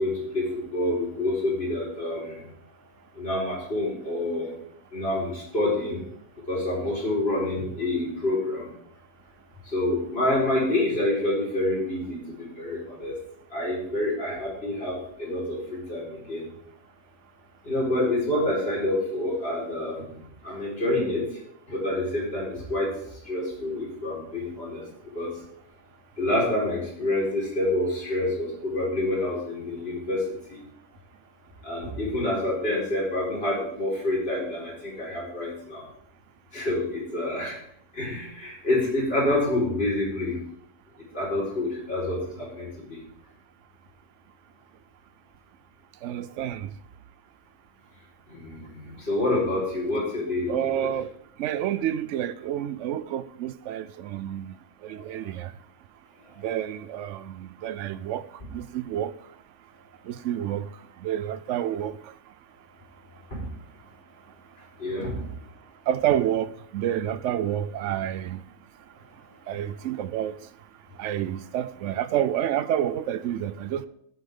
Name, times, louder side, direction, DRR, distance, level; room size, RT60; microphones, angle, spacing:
voice 1, 0.0-2.5 3.1-4.5 4.9-6.0 6.5-8.7 9.6-13.1 13.5-16.5 17.6-21.4 21.7-22.9 23.2-25.3 26.2-30.6 31.6-35.8 36.5-37.5 37.9-40.4 41.1-43.0 48.3-50.9 54.9-55.2 63.3-63.4 64.8-65.3, left 1 dB, 45° left, 4.7 m, -27 dB
voice 2, 46.0-46.7 50.5-51.1 51.4-54.6 54.8-55.5 56.4-59.1 60.1-60.7 61.0-62.0 65.9-68.4 69.5-70.4 71.0-73.9, right 11 dB, 65° right, 0.9 m, -29 dB
15.0 x 7.6 x 3.6 m
omnidirectional pair, 1.4 m